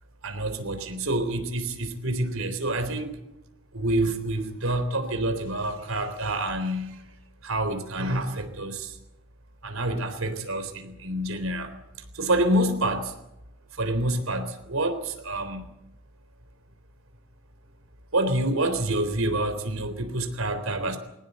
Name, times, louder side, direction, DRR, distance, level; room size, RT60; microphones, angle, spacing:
voice 1, 0.2-3.1 3.7-7.0 7.4-8.9 9.6-11.7 12.2-13.1 13.8-15.6 18.1-21.0, right 1 dB, 85° right, 8 dB, 3.7 m, -27 dB
21.5 x 18.5 x 8.1 m, 0.86 s
head